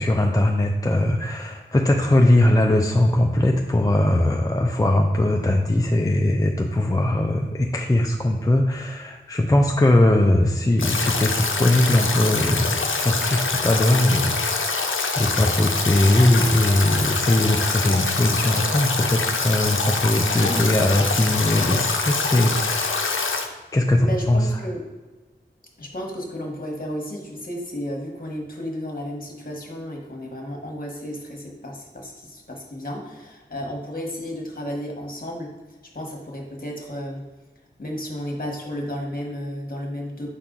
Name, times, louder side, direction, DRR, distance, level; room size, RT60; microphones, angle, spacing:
voice 1, 0.0-14.9 15.2-23.4 23.7-24.5, left 1 dB, 15° left, 1 dB, 0.4 m, -20 dB
Stream / Drip / Trickle dribble, 10.8-23.5, left 4 dB, 80° left, 0.6 m, -25 dB
voice 2, 20.2-20.7 24.0-24.8 25.8-35.5 35.9-37.2 37.8-40.3, equal, 45° left, 0 dB, 1.3 m, -33 dB
5.8 x 4.2 x 3.8 m, 1.2 s
wide cardioid pair, 60°, 20 cm